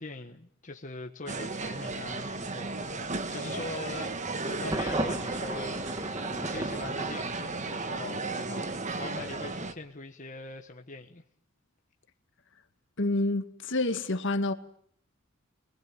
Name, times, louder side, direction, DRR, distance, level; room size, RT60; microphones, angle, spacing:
voice 1, 0.0-4.1 4.5-6.1 6.4-11.2, left 3 dB, 35° left, 1.5 m, -42 dB
sound 1, 1.3-9.7, right 3 dB, 35° right, 1.3 m, -34 dB
Thunder, 4.7-7.7, right 1 dB, 20° right, 1.7 m, -35 dB
voice 2, 13.0-14.5, left 2 dB, 60° left, 1.8 m, -28 dB
25.0 x 20.0 x 9.0 m
head